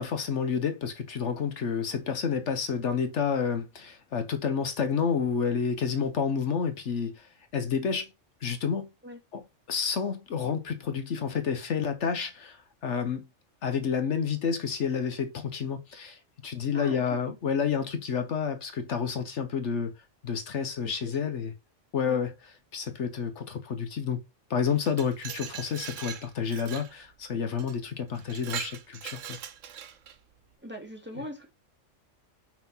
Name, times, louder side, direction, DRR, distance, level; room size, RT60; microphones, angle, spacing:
voice 1, 0.0-8.1 8.4-8.9 9.3-9.4 9.7-13.3 13.6-19.9 20.2-21.5 21.9-22.3 22.7-24.2 24.5-29.4, left 6 dB, 70° left, 1.2 m, -30 dB
voice 2, 16.7-17.0 20.8-20.9 21.2-21.3 22.0-22.2 30.6-31.5, equal, 10° right, 2.1 m, -40 dB
Glass, 24.7-26.9 27.6-27.7 28.1-30.2, right 9 dB, 85° right, 1.1 m, -40 dB
5.8 x 4.7 x 5.5 m
omnidirectional pair, 1.3 m